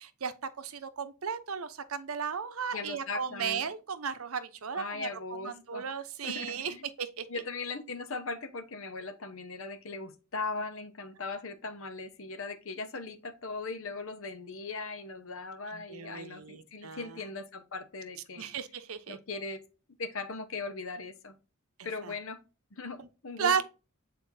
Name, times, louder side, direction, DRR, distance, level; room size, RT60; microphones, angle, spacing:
voice 1, 0.0-7.4 15.7-17.2 18.4-19.2 21.8-22.1 23.0-23.1 23.4-23.6, right 6 dB, 75° right, 0.8 m, -35 dB
voice 2, 2.7-3.7 4.7-5.8 6.2-6.9 7.3-18.5 19.1-19.6 20.0-21.3 21.8-22.4 22.7-23.6, left 3 dB, 65° left, 1.0 m, -39 dB
8.3 x 4.3 x 2.7 m
head